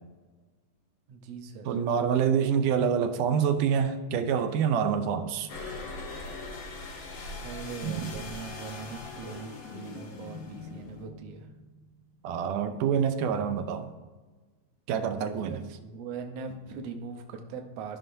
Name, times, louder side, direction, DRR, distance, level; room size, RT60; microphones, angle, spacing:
voice 1, 1.1-1.7 6.7-7.0 7.3-11.5 15.4-18.0, right 5 dB, 70° right, 4 dB, 1.7 m, -41 dB
voice 2, 1.7-5.5 7.8-8.1 12.2-13.9 14.9-15.6, right 7 dB, 85° right, 8 dB, 2.1 m, -26 dB
sound 1, 5.5-11.0, left 3 dB, 65° left, 1.3 m, -41 dB
sound 2, 8.4-12.9 15.3-15.5, left 5 dB, 85° left, 2.2 m, -47 dB
13.0 x 5.6 x 2.6 m, 1.3 s
omnidirectional pair, 3.6 m